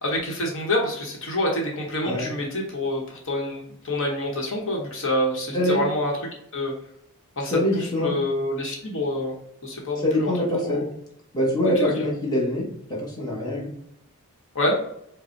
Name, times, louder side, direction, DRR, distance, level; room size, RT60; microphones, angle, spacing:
voice 1, 0.0-6.1 6.5-6.7 7.4-9.3 9.6-10.3 10.6-10.9 11.8-12.1 14.5-14.8, left 1 dB, 60° left, -1 dB, 1.0 m, -27 dB
voice 2, 7.5-8.1 10.0-10.9 11.3-12.6 12.9-13.7, left 1 dB, 20° left, -4 dB, 1.0 m, -24 dB
5.2 x 2.1 x 4.3 m, 0.74 s
head